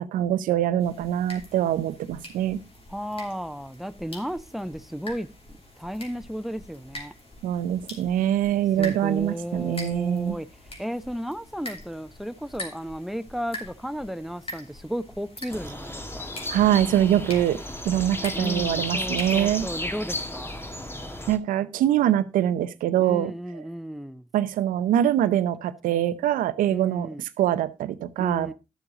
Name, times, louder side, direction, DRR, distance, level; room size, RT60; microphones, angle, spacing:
voice 1, 0.0-2.6 7.4-10.4 16.5-17.6 17.8-19.7 21.3-23.3 24.3-27.1 27.4-28.5, right 11 dB, 90° right, 0.6 m, -24 dB
sound 1, 0.8-19.8, left 1 dB, 45° left, 2.9 m, -44 dB
voice 2, 2.9-5.3 5.8-7.1 8.8-10.5 10.8-16.3 18.3-20.6 23.0-24.3 26.7-27.2 28.2-28.5, equal, ahead, 0.9 m, -34 dB
sound 2, 15.5-21.4, left 1 dB, 15° left, 1.7 m, -33 dB
11.5 x 7.0 x 3.9 m
supercardioid pair, 40°, 14 cm